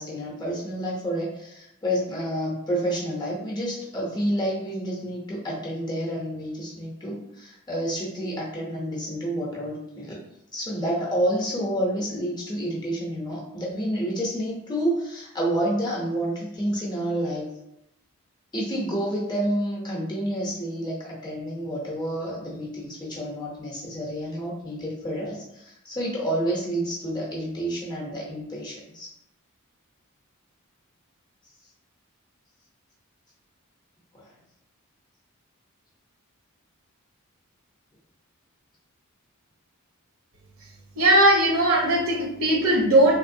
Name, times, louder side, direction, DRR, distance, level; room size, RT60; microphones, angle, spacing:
voice 1, 0.0-10.2 10.5-17.5 18.5-29.1 34.1-34.3, right 1 dB, 20° left, -3 dB, 0.6 m, -29 dB
voice 2, 41.0-43.2, right 1 dB, 65° right, 0 dB, 0.7 m, -19 dB
3.4 x 3.0 x 2.5 m, 0.83 s
head